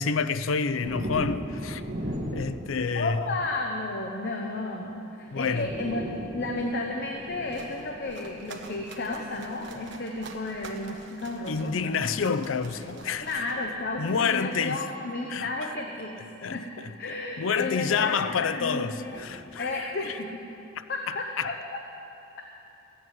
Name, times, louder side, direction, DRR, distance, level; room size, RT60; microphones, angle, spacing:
voice 1, 0.0-1.8 2.3-3.4 5.3-5.7 11.5-13.5 14.0-14.8 15.3-15.7 16.4-20.2 21.1-21.5, left 5 dB, 85° left, 0.5 m, -29 dB
sound 1, 0.8-3.5 4.8-4.9 5.2-8.8 9.7-10.0 11.1-14.1 15.6-15.7 17.4-18.2 19.0-20.4, equal, 40° right, 1.9 m, -39 dB
voice 2, 2.9-12.1 13.2-16.2 16.5-16.7 17.0-19.2 19.6-20.4 20.9-21.6, left 2 dB, 50° left, 1.0 m, -33 dB
sound 2, 7.2-14.2, right 3 dB, 60° right, 1.2 m, -47 dB
14.0 x 8.6 x 9.0 m
head